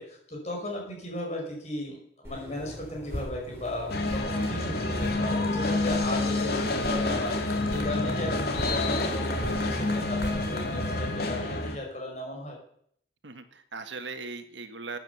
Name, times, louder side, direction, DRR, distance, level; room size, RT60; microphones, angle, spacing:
voice 1, 0.0-12.6, left 1 dB, 40° left, 0 dB, 5.3 m, -36 dB
sound 1, 2.2-11.0, equal, 15° right, 6.0 m, -39 dB
sound 2, 3.9-11.8, left 2 dB, 55° left, 2.2 m, -28 dB
voice 2, 13.2-15.0, right 4 dB, 80° right, 8 dB, 1.5 m, -39 dB
14.0 x 9.2 x 7.0 m, 0.67 s
head